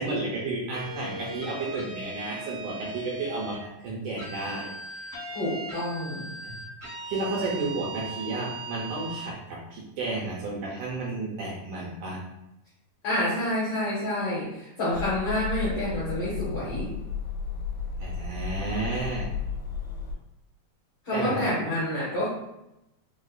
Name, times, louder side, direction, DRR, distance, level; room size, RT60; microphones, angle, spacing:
voice 1, 0.0-5.1 6.4-6.5 7.1-12.2 18.0-19.3 21.1-21.4, right 2 dB, 80° right, -3 dB, 1.8 m, -32 dB
sound 1, 0.7-3.6 4.2-9.3, right 2 dB, 55° right, 0.7 m, -39 dB
voice 2, 5.3-6.3 13.0-16.9 21.0-22.3, left 1 dB, 75° left, -9 dB, 1.3 m, -28 dB
sound 2, 14.9-20.1, left 5 dB, 90° left, 2.6 m, -33 dB
5.4 x 2.0 x 2.4 m, 0.88 s
omnidirectional pair, 3.9 m